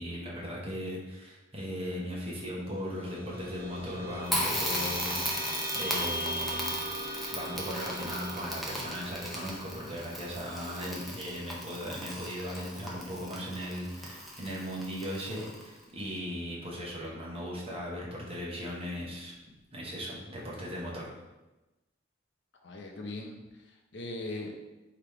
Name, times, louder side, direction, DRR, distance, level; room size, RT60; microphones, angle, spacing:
voice 1, 0.0-6.8 7.3-19.3 19.7-21.1, equal, 30° right, -4 dB, 1.0 m, -38 dB
sound 1, 2.7-13.5, right 1 dB, 55° right, 0.7 m, -40 dB
Crackle, 4.3-15.8, equal, ahead, 0.7 m, -37 dB
voice 2, 22.6-24.5, left 2 dB, 65° left, 1 dB, 0.6 m, -40 dB
3.4 x 2.9 x 4.6 m, 1.0 s
head